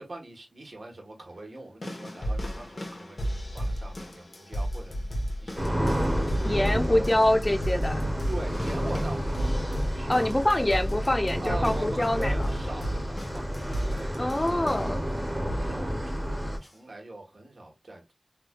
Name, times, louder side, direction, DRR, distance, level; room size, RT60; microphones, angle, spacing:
voice 1, 0.0-4.9 5.4-5.7 6.3-7.1 8.3-9.3 9.9-10.6 11.4-15.0 15.5-18.1, right 2 dB, 75° right, 1.2 m, -42 dB
sound 1, 1.8-15.0 15.5-15.8 16.6-16.7, equal, 60° left, 1.2 m, -34 dB
sound 2, 5.5-16.6, equal, 10° right, 1.2 m, -30 dB
voice 2, 6.4-8.0 10.1-12.5 14.2-15.0, left 1 dB, 25° left, 0.7 m, -25 dB
3.5 x 3.2 x 2.3 m
wide cardioid pair, 70°, 0 cm